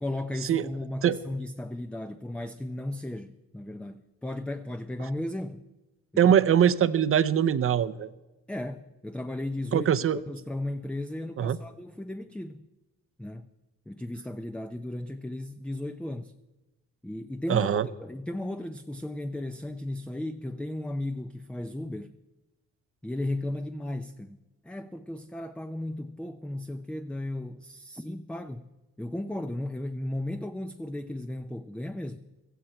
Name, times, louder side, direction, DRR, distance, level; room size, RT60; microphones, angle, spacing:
voice 1, 0.0-5.6 6.2-6.3 8.5-9.9 10.3-12.7 13.2-13.5 13.9-16.3 17.0-22.1 23.0-24.4 24.6-28.7 29.0-32.2, left 1 dB, 5° left, 0.5 m, -35 dB
voice 2, 6.2-8.1 9.7-10.2 11.4-11.6 17.5-17.9, right 9 dB, 45° right, 0.7 m, -22 dB
16.0 x 14.5 x 4.5 m
cardioid pair, 90°, 30 cm